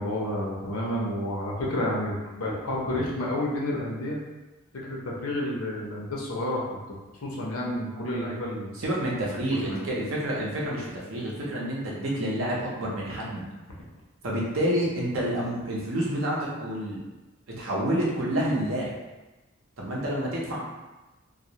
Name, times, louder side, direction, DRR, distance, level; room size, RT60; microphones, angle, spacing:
voice 1, 0.0-4.2 4.8-6.7 7.2-8.7 9.6-9.8, left 1 dB, 90° left, -3 dB, 0.6 m, -30 dB
voice 2, 8.7-13.4 14.2-17.0 17.5-18.9 19.8-20.6, right 1 dB, 70° right, -4 dB, 0.6 m, -28 dB
2.3 x 2.0 x 2.7 m, 1.1 s
head